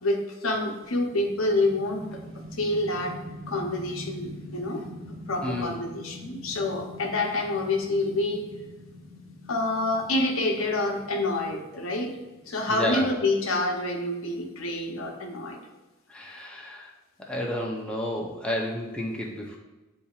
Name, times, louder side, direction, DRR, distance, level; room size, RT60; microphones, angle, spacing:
voice 1, 0.0-3.1 3.5-8.5 9.5-12.2 12.4-15.6, left 2 dB, 85° left, 2 dB, 0.7 m, -28 dB
sound 1, 0.8-13.0, left 1 dB, 80° right, 0.9 m, -44 dB
voice 2, 5.4-5.7 12.7-13.1 16.1-16.9 17.3-19.6, left 1 dB, 5° left, -2 dB, 0.6 m, -31 dB
8.1 x 2.8 x 2.4 m, 1.1 s
head